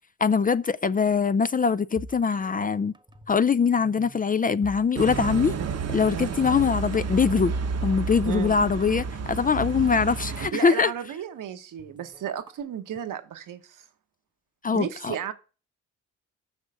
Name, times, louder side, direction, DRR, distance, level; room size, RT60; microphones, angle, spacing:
voice 1, 0.2-2.9 3.3-5.6 5.9-7.5 7.8-10.9 14.6-15.3, left 5 dB, 25° left, 0.4 m, -23 dB
sound 1, 2.0-3.5 3.8-5.4 5.6-5.9 6.5-7.6 7.8-7.9 9.1-11.2 11.8-12.6, right 2 dB, 15° right, 0.8 m, -45 dB
sound 2, 5.0-10.5, right 5 dB, 50° right, 0.9 m, -30 dB
voice 2, 8.2-8.6 10.5-13.8 14.7-15.3, right 9 dB, 70° right, 1.1 m, -34 dB
6.5 x 6.2 x 4.9 m
supercardioid pair, 50°, 33 cm